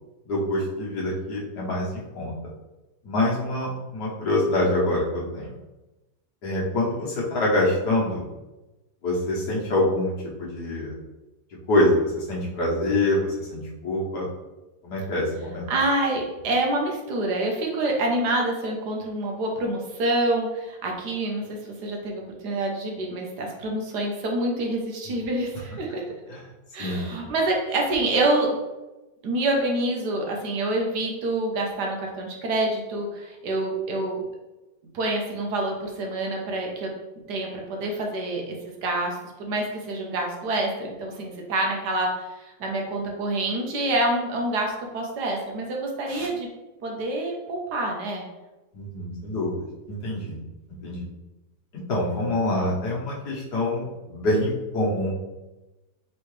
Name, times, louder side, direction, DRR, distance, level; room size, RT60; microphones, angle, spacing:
voice 1, 0.3-2.3 3.0-5.5 6.4-8.2 9.0-10.1 10.4-11.0 11.7-14.3 14.8-15.7 26.3-26.4 26.8-27.0 46.1-46.3 48.7-50.4 50.8-51.0 51.7-55.1, left 1 dB, 70° left, -5 dB, 1.7 m, -25 dB
voice 2, 15.7-26.0 26.7-28.5 29.2-34.2 34.9-36.9 37.3-46.5 46.8-48.2, right 2 dB, 70° right, 0 dB, 1.4 m, -27 dB
4.6 x 3.1 x 3.2 m, 1.0 s
omnidirectional pair, 1.9 m